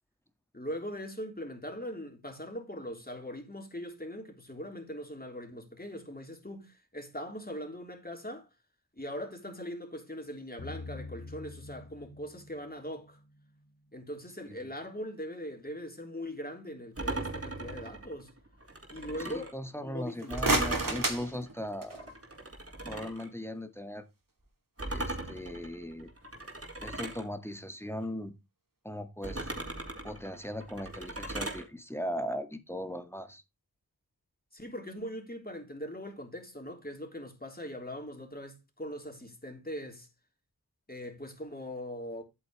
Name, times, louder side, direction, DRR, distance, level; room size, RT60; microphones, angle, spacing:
voice 1, 0.5-8.5 8.9-13.2 13.9-18.3 18.9-19.6 19.8-20.3 34.5-40.1 40.9-42.2, equal, 25° left, 3.5 m, -41 dB
sound 1, 10.6-13.7, left 3 dB, 75° left, 1.7 m, -46 dB
sound 2, 17.0-19.5 20.3-23.3 24.8-27.3 29.2-31.6, right 2 dB, 40° right, 3.4 m, -38 dB
voice 2, 19.3-22.0 22.8-24.0 24.9-26.1 26.8-28.3 28.8-29.5 30.0-33.4, equal, 5° left, 1.7 m, -38 dB
sound 3, 20.1-22.1, right 2 dB, 60° right, 2.6 m, -31 dB
11.5 x 8.5 x 3.2 m
wide cardioid pair, 50°, 38 cm